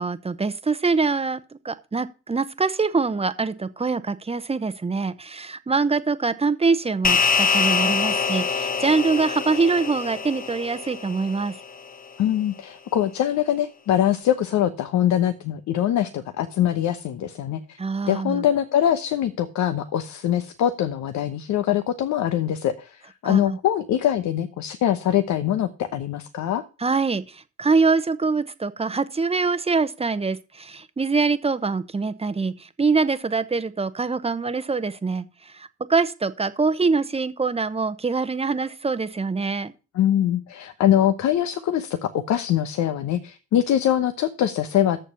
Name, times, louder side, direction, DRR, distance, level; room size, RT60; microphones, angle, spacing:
voice 1, 0.0-11.5 17.8-18.4 23.2-23.6 26.8-39.7, right 4 dB, 20° right, 0.9 m, -24 dB
sound 1, 7.0-11.7, left 5 dB, 25° left, 1.1 m, -24 dB
voice 2, 12.2-17.8 18.1-26.6 39.9-45.0, left 11 dB, 65° left, 1.0 m, -23 dB
7.6 x 6.7 x 7.0 m
supercardioid pair, 70°, 31 cm